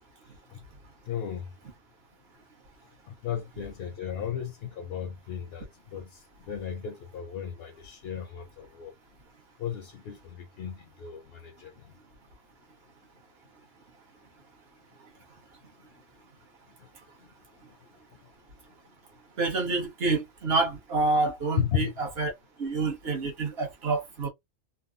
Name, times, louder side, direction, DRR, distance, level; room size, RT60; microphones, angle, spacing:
voice 1, 1.1-1.5 3.1-8.9 9.6-11.7 21.6-21.9, left 9 dB, 65° left, 0.7 m, -35 dB
voice 2, 19.4-22.3 22.6-24.3, right 3 dB, 55° right, 1.1 m, -28 dB
3.4 x 2.0 x 2.5 m
omnidirectional pair, 1.3 m